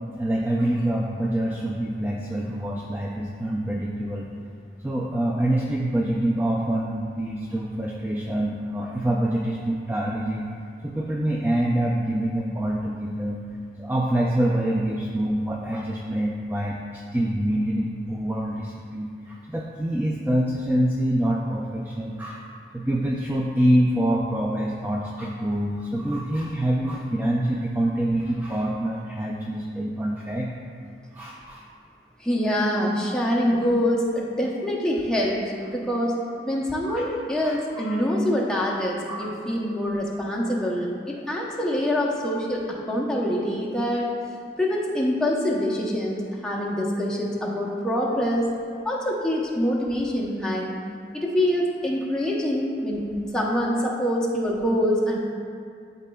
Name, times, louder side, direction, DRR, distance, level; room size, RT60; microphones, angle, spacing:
voice 1, 0.1-4.3 4.8-10.5 10.8-13.4 13.8-22.4 22.7-30.5 31.1-31.6 36.9-37.0 37.4-38.1 39.1-39.3, right 1 dB, 10° right, -3 dB, 0.3 m, -26 dB
voice 2, 32.2-36.1 36.4-44.1 44.6-48.5 48.8-50.7 51.1-53.0 53.3-55.2, equal, 5° left, -4 dB, 0.7 m, -25 dB
12.0 x 4.1 x 2.3 m, 2.3 s
head